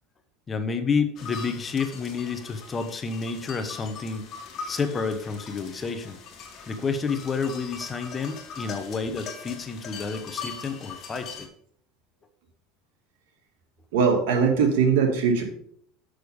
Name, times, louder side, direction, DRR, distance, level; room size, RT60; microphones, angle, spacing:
voice 1, 0.5-4.2 4.7-6.2 6.7-11.5, left 5 dB, 25° left, 9 dB, 1.0 m, -29 dB
sound 1, 1.2-11.5, left 5 dB, 40° left, 1.9 m, -41 dB
voice 2, 13.9-15.4, right 6 dB, 85° right, 2 dB, 2.2 m, -21 dB
6.8 x 6.4 x 5.0 m, 0.64 s
supercardioid pair, 125°, 0 cm